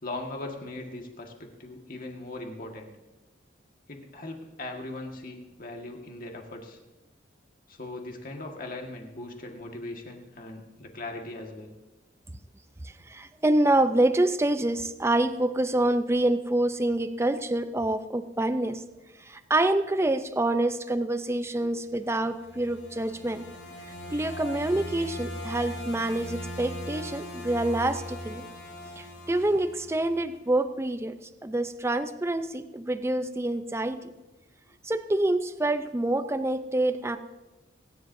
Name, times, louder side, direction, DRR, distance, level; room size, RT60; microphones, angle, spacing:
voice 1, 0.0-2.9 3.9-6.8 7.7-11.7 21.6-21.7, left 2 dB, 50° left, 2 dB, 1.7 m, -39 dB
voice 2, 12.8-18.8 19.2-23.4 24.1-28.5 29.0-31.2 31.4-34.1 34.8-37.2, right 1 dB, 15° right, 10 dB, 0.5 m, -26 dB
sound 1, 22.1-30.3, equal, 75° left, 5.9 m, -39 dB
28.0 x 10.5 x 2.7 m, 1.1 s
head